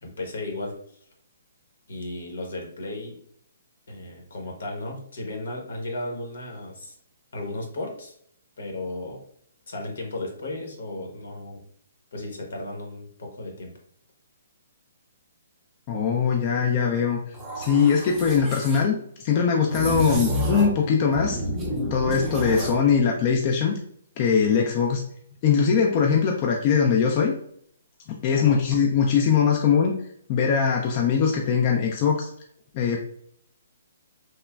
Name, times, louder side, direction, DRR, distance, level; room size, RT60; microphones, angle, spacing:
voice 1, 0.0-1.0 1.9-3.2 3.9-6.9 7.3-8.1 8.6-9.2 9.7-11.6 12.1-13.7 28.3-28.6, left 2 dB, 75° left, 1 dB, 0.9 m, -35 dB
voice 2, 15.9-17.2 17.6-18.9 19.2-21.4 21.9-23.8 24.2-25.1 25.4-27.3 28.1-30.0 30.3-32.3 32.7-33.0, left 6 dB, 35° left, 1 dB, 0.3 m, -21 dB
sound 1, 17.3-18.8 19.7-20.8 21.1-22.8, equal, 15° right, 0.5 m, -29 dB
3.1 x 2.0 x 2.3 m, 0.65 s
hypercardioid pair, 155°, 0 cm